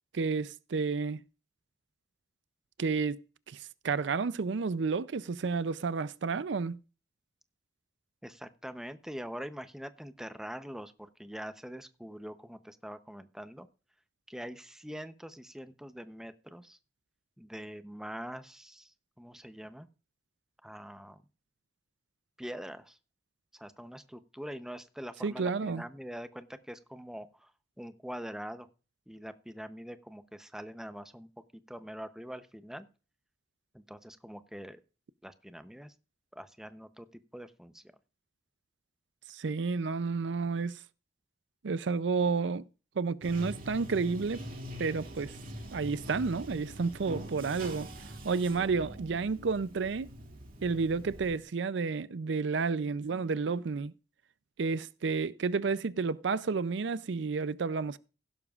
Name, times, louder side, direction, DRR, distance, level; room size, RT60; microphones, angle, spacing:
voice 1, 0.1-1.2 2.8-3.2 3.5-6.8 25.2-25.8 39.3-40.8 41.6-42.6 43.0-44.5 44.8-45.3 45.7-47.9 48.2-50.1 50.6-53.9 54.6-58.0, right 4 dB, 70° right, 0.5 m, -31 dB
voice 2, 8.2-13.7 14.3-16.8 17.4-19.9 20.6-21.2 22.4-23.0 23.5-27.5 27.8-28.7 29.1-31.3 31.7-32.9 33.7-34.8 35.2-35.9 36.3-37.8 48.5-48.7, equal, 5° right, 0.7 m, -44 dB
Bathtub (filling or washing), 43.2-51.4, equal, 50° right, 2.3 m, -44 dB
16.0 x 12.0 x 2.4 m
head